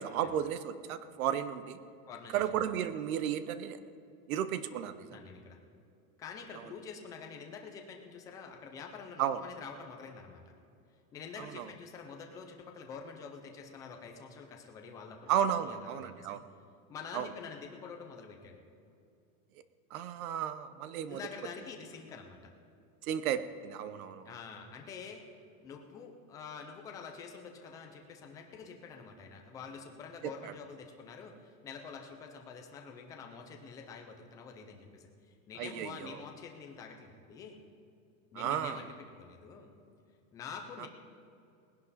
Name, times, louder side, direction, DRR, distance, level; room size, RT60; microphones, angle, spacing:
voice 1, 0.0-1.8 2.3-3.8 4.3-5.2 9.2-9.4 11.4-11.7 15.3-16.4 17.1-17.3 19.9-21.2 23.0-24.3 30.2-30.5 35.6-36.2 38.3-38.9 40.8-40.9, right 9 dB, 75° right, 13 dB, 0.9 m, -34 dB
voice 2, 5.1-5.6 6.2-10.4 11.1-15.3 15.6-16.4 16.9-18.6 21.0-22.4 24.3-25.2 25.6-37.6 38.3-38.9 39.2-39.7 40.3-40.9, left 5 dB, 10° left, 3 dB, 0.3 m, -47 dB
19.5 x 11.0 x 4.1 m, 2.6 s
supercardioid pair, 165°, 43 cm